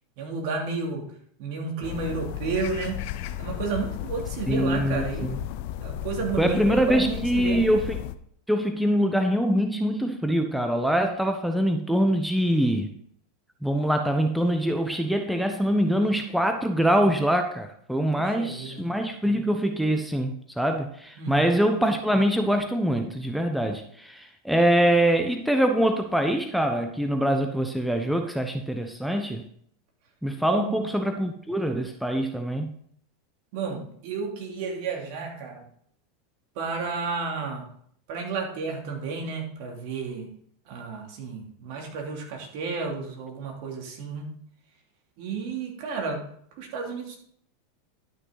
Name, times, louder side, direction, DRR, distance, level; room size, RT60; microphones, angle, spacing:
voice 1, 0.2-1.1 1.4-3.0 3.4-5.4 5.8-7.6 18.1-18.9 21.2-21.5 30.5-30.8 33.5-35.6 36.5-37.7 38.1-40.3 40.7-44.3 45.2-46.2 46.6-47.2, right 4 dB, 60° right, 0 dB, 2.9 m, -32 dB
sound 1, 1.8-8.1, left 12 dB, 60° left, 0.7 m, -34 dB
voice 2, 4.5-5.4 6.4-8.0 8.5-12.9 13.6-29.5 30.2-32.7, equal, ahead, 5 dB, 0.9 m, -24 dB
12.0 x 6.2 x 4.0 m, 0.64 s
hypercardioid pair, 100°, 0 cm